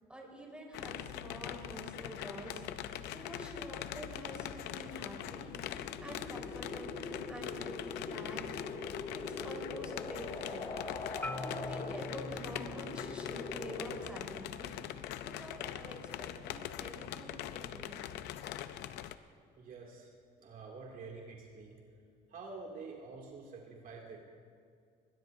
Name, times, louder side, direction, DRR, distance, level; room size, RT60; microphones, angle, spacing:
voice 1, 0.1-2.6 3.1-5.5 6.0-8.4 9.1-10.6 11.4-14.7 15.2-18.0, right 1 dB, 5° right, -2 dB, 4.5 m, -47 dB
sound 1, 0.7-19.2, left 12 dB, 85° left, 0.6 m, -43 dB
sound 2, 5.3-14.1, left 3 dB, 40° left, 2.5 m, -43 dB
Marimba xylophone, 11.2-15.4, left 1 dB, 10° left, 0.8 m, -46 dB
voice 2, 19.6-20.1 20.4-21.8 22.3-24.2, right 4 dB, 55° right, -1 dB, 2.6 m, -48 dB
21.0 x 20.0 x 2.7 m, 2.3 s
cardioid pair, 110°, 17 cm